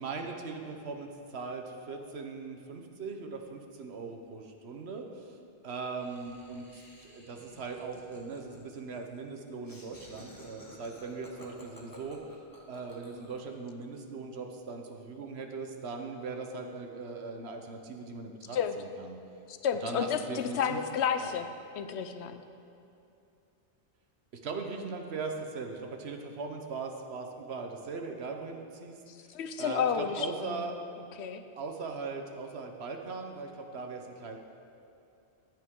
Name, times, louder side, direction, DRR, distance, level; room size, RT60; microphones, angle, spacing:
voice 1, 0.0-5.4 5.6-12.2 12.7-19.2 19.8-20.8 21.2-21.3 24.4-29.0 29.6-30.8 31.6-34.4, right 4 dB, 70° right, 3 dB, 1.2 m, -39 dB
Laughter, 6.0-13.5, left 1 dB, 20° left, 1.3 m, -53 dB
voice 2, 19.5-21.5 21.8-22.4 29.1-30.7 31.2-31.4, left 7 dB, 75° left, 8 dB, 0.9 m, -31 dB
14.0 x 9.1 x 3.7 m, 2.7 s
omnidirectional pair, 1.1 m